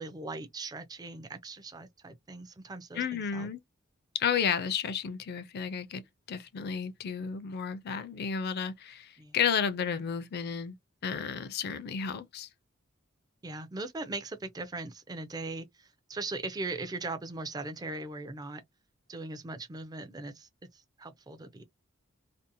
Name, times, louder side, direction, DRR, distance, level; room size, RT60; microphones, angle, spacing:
voice 1, 0.0-3.5 9.2-9.4 13.4-18.6 19.1-21.6, right 2 dB, 20° right, 0.4 m, -39 dB
voice 2, 2.9-3.6 4.1-6.0 6.3-10.7 11.0-12.5, left 7 dB, 50° left, 0.4 m, -32 dB
2.6 x 2.0 x 2.6 m
head